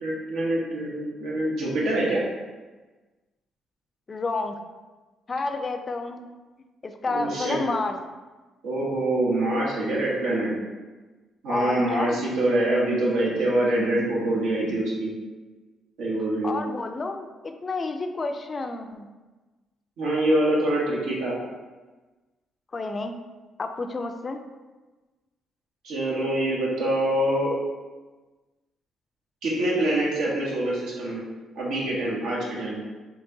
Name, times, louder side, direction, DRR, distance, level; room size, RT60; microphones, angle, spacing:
voice 1, 0.0-2.2 7.1-7.6 8.6-10.5 11.4-15.1 16.0-16.6 20.0-21.4 25.8-27.5 29.4-31.2 31.5-32.8, right 1 dB, 90° right, -5 dB, 1.2 m, -25 dB
voice 2, 4.1-4.6 5.3-6.3 6.8-8.0 11.5-12.2 16.4-19.1 22.7-23.2 23.6-24.4, left 3 dB, 35° left, 6 dB, 0.4 m, -30 dB
4.5 x 2.9 x 2.7 m, 1.2 s
cardioid pair, 90°, 0 cm